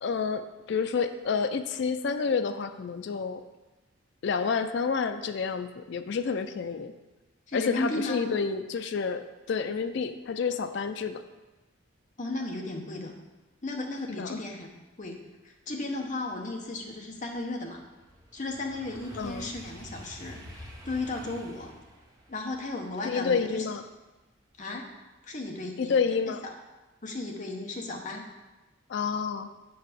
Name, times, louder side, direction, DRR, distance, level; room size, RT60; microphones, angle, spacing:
voice 1, 0.0-3.4 4.2-6.9 7.5-11.2 14.1-14.4 19.2-19.5 23.0-23.8 25.8-26.4 28.9-29.5, left 5 dB, 55° left, 10 dB, 0.3 m, -29 dB
voice 2, 7.5-8.3 12.2-13.1 13.6-14.7 15.0-15.2 15.4-17.8 18.3-21.7 22.3-23.7 24.6-24.9 25.2-26.0 26.4-26.5 27.0-28.2, left 2 dB, 35° left, 1 dB, 0.8 m, -35 dB
sound 1, 15.2-15.3 15.7-24.8 25.2-25.6, equal, 15° right, 0.8 m, -49 dB
6.9 x 4.7 x 5.0 m, 1.1 s
head